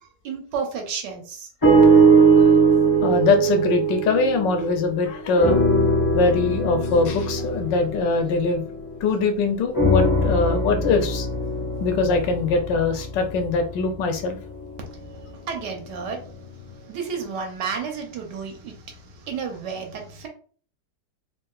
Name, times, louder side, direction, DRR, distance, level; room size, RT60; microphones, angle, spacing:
voice 1, 0.2-1.5 14.8-20.3, right 6 dB, 80° right, 1.4 m, -32 dB
sound 1, 1.6-5.0 5.4-9.1 9.7-14.0 14.6-14.7, right 3 dB, 30° left, 0.3 m, -20 dB
voice 2, 3.0-5.6 6.1-8.6 9.0-11.3 11.8-14.4, left 4 dB, 85° left, 1.3 m, -22 dB
3.6 x 2.4 x 2.3 m
omnidirectional pair, 1.9 m